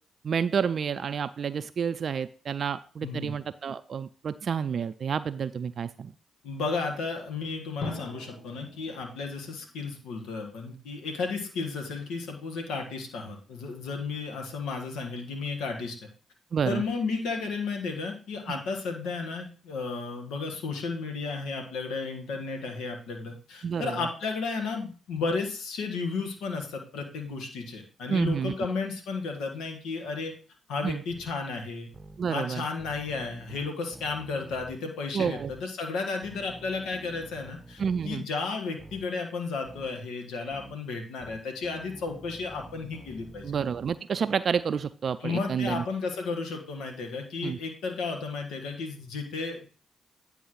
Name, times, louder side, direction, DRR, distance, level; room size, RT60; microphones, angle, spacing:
voice 1, 0.2-6.1 16.5-16.8 23.6-24.0 28.1-28.5 30.8-31.0 32.2-32.6 35.1-35.5 37.8-38.2 43.4-45.8 47.4-47.6, right 7 dB, 55° right, 12 dB, 0.4 m, -29 dB
voice 2, 3.0-3.3 6.4-16.1 16.6-30.4 30.7-31.9 32.3-43.5 45.2-49.7, left 4 dB, 75° left, 3 dB, 1.5 m, -33 dB
Drum, 7.8-10.5, left 2 dB, 60° left, 1.7 m, -42 dB
sound 1, 31.1-31.3 31.9-32.2 32.8-34.8 35.4-35.6 36.2-38.2 38.8-39.1 39.7-39.9 40.5-40.8 41.2-44.0, right 1 dB, 10° right, 1.0 m, -48 dB
9.4 x 3.3 x 6.4 m, 0.38 s
hypercardioid pair, 50°, 0 cm